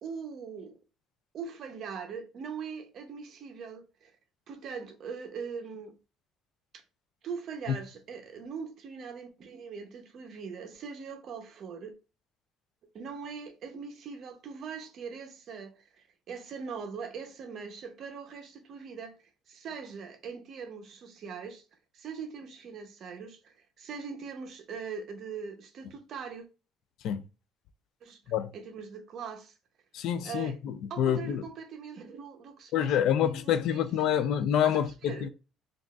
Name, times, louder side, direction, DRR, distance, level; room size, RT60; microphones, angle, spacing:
voice 1, 0.0-0.7 1.3-4.1 4.5-5.9 6.7-6.8 7.2-11.9 12.9-19.2 19.5-21.6 21.9-26.5 28.0-28.2 28.5-29.5 30.2-30.6 30.9-34.2 34.6-35.3, right 6 dB, 50° right, 0.7 m, -41 dB
voice 2, 29.9-31.4 32.7-35.3, left 9 dB, 65° left, 0.3 m, -27 dB
3.8 x 2.4 x 2.3 m
cardioid pair, 145°, 0 cm